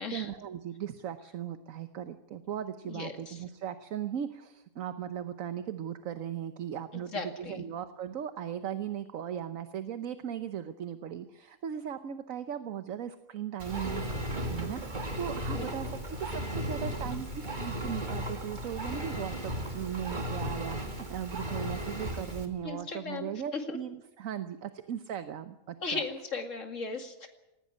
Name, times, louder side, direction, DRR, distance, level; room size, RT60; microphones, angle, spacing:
voice 1, 0.0-26.0, right 9 dB, 70° right, 10 dB, 1.3 m, -38 dB
voice 2, 2.9-3.4 7.1-7.7 15.5-15.7 22.6-23.8 25.8-27.3, left 4 dB, 60° left, 5 dB, 2.6 m, -37 dB
Engine, 13.6-22.5, equal, 35° right, 2.2 m, -35 dB
19.0 x 16.0 x 9.8 m, 0.93 s
omnidirectional pair, 1.5 m